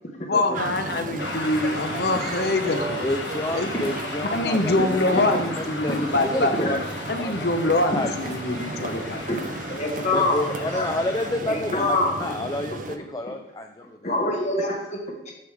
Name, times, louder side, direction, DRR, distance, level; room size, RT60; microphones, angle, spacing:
voice 1, 0.3-3.1 3.5-3.7 4.2-6.8 7.1-9.2, left 2 dB, 65° left, 7 dB, 0.9 m, -24 dB
sound 1, 0.5-13.0, right 3 dB, 50° right, 0.6 m, -34 dB
sound 2, 1.2-11.3, left 3 dB, 90° left, 1.3 m, -36 dB
voice 2, 3.0-5.2 5.8-6.0 6.2-6.8 7.2-7.3 7.9-8.1 10.1-14.1, left 1 dB, 20° left, 5 dB, 0.4 m, -29 dB
voice 3, 9.7-10.9 11.4-12.1 14.0-15.3, left 2 dB, 40° left, 0 dB, 1.3 m, -25 dB
13.5 x 4.9 x 3.5 m, 0.91 s
head